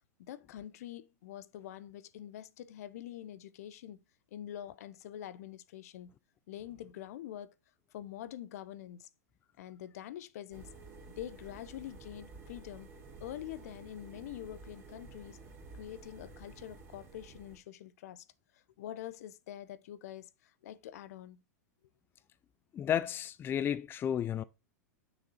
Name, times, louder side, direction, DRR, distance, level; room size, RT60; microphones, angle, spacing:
voice 1, 0.2-4.0 4.3-6.1 6.5-7.5 7.9-9.1 9.6-10.7 11.1-12.9 13.2-15.4 15.7-18.2 18.5-21.4, left 11 dB, 65° left, 0.7 m, -45 dB
sound 1, 10.5-17.6, right 3 dB, 30° right, 2.9 m, -52 dB
voice 2, 22.7-24.4, left 9 dB, 25° left, 0.4 m, -32 dB
6.5 x 5.1 x 4.0 m
hypercardioid pair, 105°, 9 cm